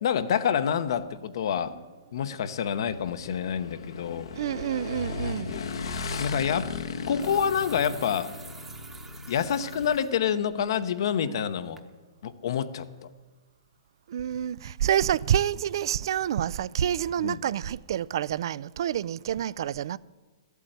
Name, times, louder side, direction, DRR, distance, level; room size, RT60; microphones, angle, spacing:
voice 1, 0.0-1.7 2.1-4.3 6.2-6.7 7.1-8.3 9.3-11.8 12.2-12.9 17.2-17.4, left 8 dB, 65° left, 0.9 m, -27 dB
Motorcycle / Engine, 2.9-9.9, left 4 dB, 80° left, 1.2 m, -36 dB
voice 2, 4.3-5.6 14.1-20.0, right 10 dB, 60° right, 0.4 m, -28 dB
sound 1, 5.6-5.8 6.8-10.1 10.6-10.7 11.2-11.5 11.8-11.9, right 4 dB, 10° right, 0.9 m, -48 dB
13.0 x 8.3 x 9.1 m
hypercardioid pair, 150°, 3 cm